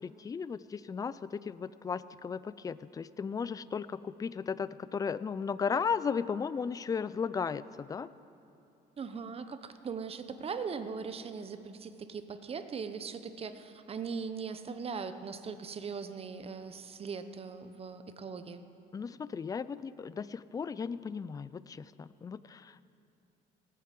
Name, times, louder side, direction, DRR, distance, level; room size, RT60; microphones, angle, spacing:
voice 1, 0.0-8.1 18.9-22.8, left 6 dB, 20° left, 17 dB, 0.4 m, -35 dB
voice 2, 9.0-18.6, right 5 dB, 35° right, 10 dB, 0.9 m, -40 dB
18.0 x 9.5 x 7.6 m, 2.8 s
cardioid pair, 110°, 17 cm